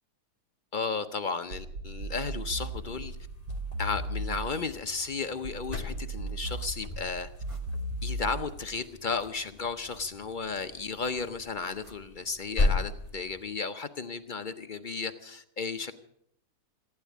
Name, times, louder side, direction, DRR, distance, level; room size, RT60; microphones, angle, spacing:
voice 1, 0.7-3.2 3.8-7.3 8.0-15.9, left 4 dB, 50° left, 9 dB, 0.6 m, -34 dB
sound 1, 1.5-4.8 5.4-8.8, right 2 dB, 60° right, 1.3 m, -36 dB
sound 2, 2.5-13.6, left 2 dB, 25° left, 2.0 m, -37 dB
sound 3, 4.5-4.8 5.2-5.3 6.4-6.9 7.3-8.2 9.1-10.4 11.1-12.4 12.6-12.7, equal, 20° right, 1.6 m, -57 dB
15.5 x 9.8 x 8.4 m, 0.71 s
omnidirectional pair, 1.7 m